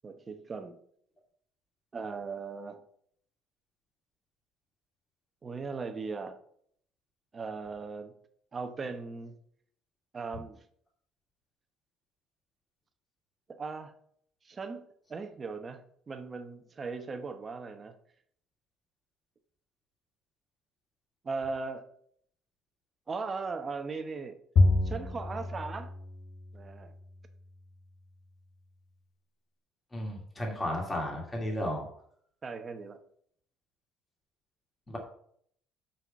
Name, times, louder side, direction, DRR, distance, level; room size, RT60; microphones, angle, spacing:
voice 1, 0.0-0.8 1.9-2.8 5.4-6.4 7.3-8.1 8.5-9.3 10.1-10.6 13.5-13.9 14.4-14.8 15.1-17.9 21.2-21.9 23.1-24.4 24.8-25.9 26.5-26.9 32.4-33.0, right 4 dB, 25° right, 8 dB, 1.0 m, -38 dB
Bowed string instrument, 24.6-27.1, left 2 dB, 50° left, 1.0 m, -28 dB
voice 2, 29.9-31.8 34.9-35.0, left 1 dB, 15° left, 0 dB, 2.4 m, -33 dB
5.9 x 5.8 x 6.9 m, 0.65 s
cardioid pair, 125°, 0 cm